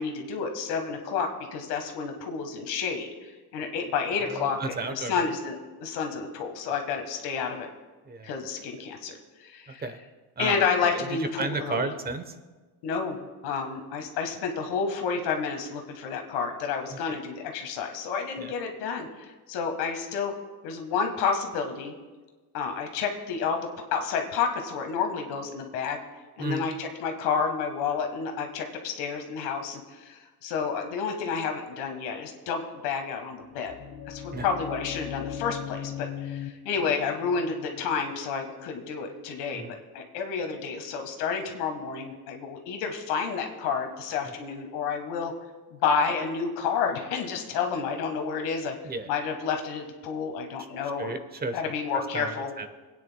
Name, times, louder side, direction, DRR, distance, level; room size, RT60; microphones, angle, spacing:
voice 1, 0.0-4.6 4.9-7.7 8.2-9.8 10.4-11.9 12.8-13.2 13.4-20.3 20.6-21.9 22.5-26.0 26.4-33.7 34.1-39.6 39.9-45.3 45.7-48.7 49.1-51.1 51.5-52.5, left 6 dB, 90° left, 4 dB, 1.6 m, -30 dB
voice 2, 4.2-5.3 8.0-8.3 9.7-10.0 10.4-10.6 10.9-12.4 16.9-17.2 18.4-18.5 26.4-26.7 34.3-34.5 39.5-39.8 44.1-44.3 48.8-49.1 51.0-51.7 52.1-52.7, right 3 dB, 25° right, 10 dB, 0.9 m, -34 dB
sound 1, 33.4-39.2, left 9 dB, 35° left, 0.5 m, -39 dB
23.5 x 9.5 x 2.2 m, 1.3 s
cardioid pair, 120°, 39 cm